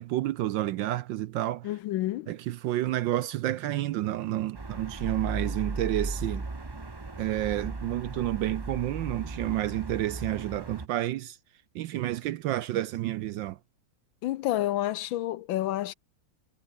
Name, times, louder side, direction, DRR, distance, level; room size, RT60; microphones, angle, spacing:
voice 1, 0.0-1.7 2.3-6.4 7.2-11.4 11.7-13.6, right 14 dB, 75° right, 1.2 m, -30 dB
voice 2, 1.6-2.3 14.2-15.9, left 14 dB, 75° left, 1.3 m, -29 dB
sound 1, 4.5-10.9, right 3 dB, 25° right, 0.5 m, -36 dB
omnidirectional pair, 2.4 m